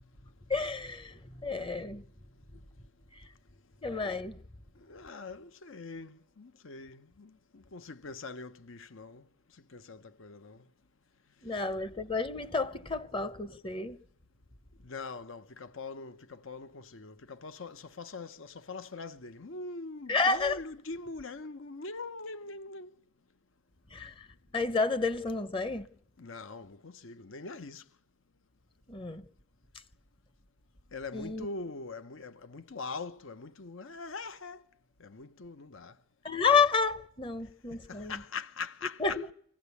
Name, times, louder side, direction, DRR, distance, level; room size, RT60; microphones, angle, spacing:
voice 1, 0.5-2.0 3.8-4.4 11.4-14.0 20.1-20.6 23.9-24.3 24.5-25.9 28.9-29.2 31.1-31.5 36.2-38.2 39.0-39.3, left 4 dB, 25° left, 0.8 m, -30 dB
voice 2, 4.8-9.2 9.7-10.6 14.8-22.9 26.2-27.8 30.9-34.6 35.0-36.0 37.9-39.3, left 3 dB, 75° left, 0.9 m, -42 dB
25.0 x 15.5 x 8.3 m
head